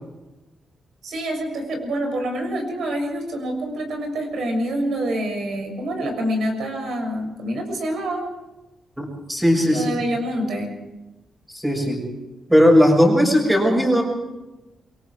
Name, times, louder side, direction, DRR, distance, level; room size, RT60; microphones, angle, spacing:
voice 1, 1.0-8.3 9.7-10.7, right 1 dB, 70° right, 3 dB, 6.8 m, -26 dB
voice 2, 9.0-9.9 11.5-12.0 12.5-14.0, equal, 10° right, -4 dB, 6.8 m, -17 dB
28.5 x 23.5 x 4.8 m, 1.0 s
cardioid pair, 130°, 0 cm